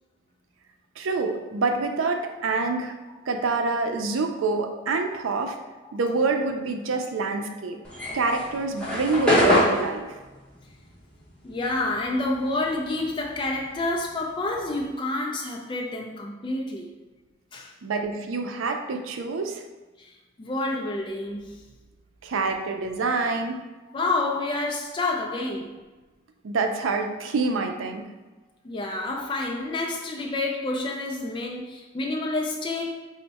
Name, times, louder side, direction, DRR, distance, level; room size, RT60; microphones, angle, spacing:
voice 1, 1.0-3.0 3.3-5.6 5.9-7.8 8.1-10.1 17.8-19.6 22.2-23.6 26.4-28.0, right 3 dB, 90° right, 5 dB, 0.5 m, -26 dB
sound 1, 7.8-12.6 12.8-14.8, left 1 dB, 5° left, 0.9 m, -25 dB
voice 2, 11.4-16.9 17.5-17.7 20.0-20.1 20.4-21.6 23.9-25.8 28.6-32.9, left 2 dB, 25° left, -1 dB, 0.3 m, -29 dB
4.4 x 2.1 x 4.0 m, 1.2 s
head